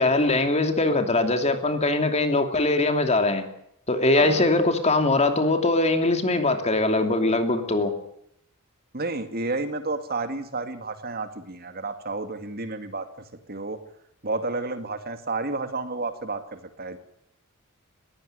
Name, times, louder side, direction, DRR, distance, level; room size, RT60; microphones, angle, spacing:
voice 1, 0.0-3.4 3.9-7.9, left 2 dB, 30° left, 7 dB, 2.9 m, -22 dB
voice 2, 8.9-13.1 13.5-13.8 14.2-17.0, right 3 dB, 45° right, 9 dB, 2.3 m, -31 dB
20.5 x 16.0 x 9.6 m, 0.74 s
head